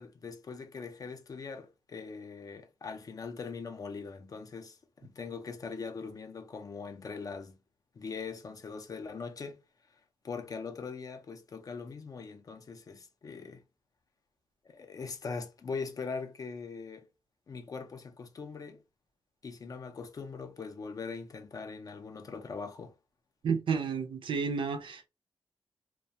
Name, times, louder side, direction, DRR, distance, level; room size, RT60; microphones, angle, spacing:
voice 1, 0.0-7.6 7.9-9.6 9.9-10.0 10.2-13.6 14.7-17.1 17.5-18.8 19.4-22.9, left 5 dB, 40° left, 0.4 m, -41 dB
voice 2, 23.4-25.1, right 5 dB, 65° right, 0.4 m, -31 dB
2.3 x 2.1 x 2.7 m
wide cardioid pair, 145°, 9 cm